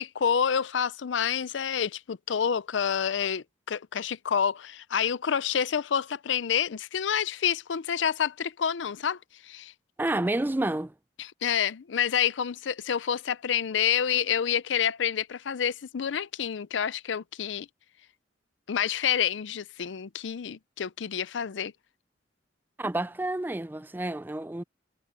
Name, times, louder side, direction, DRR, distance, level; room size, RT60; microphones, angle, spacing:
voice 1, 0.0-9.2 9.4-9.7 11.2-17.7 18.7-21.7, left 8 dB, 90° left, 0.5 m, -28 dB
voice 2, 10.0-10.9 22.8-24.6, right 1 dB, 10° right, 0.4 m, -29 dB
head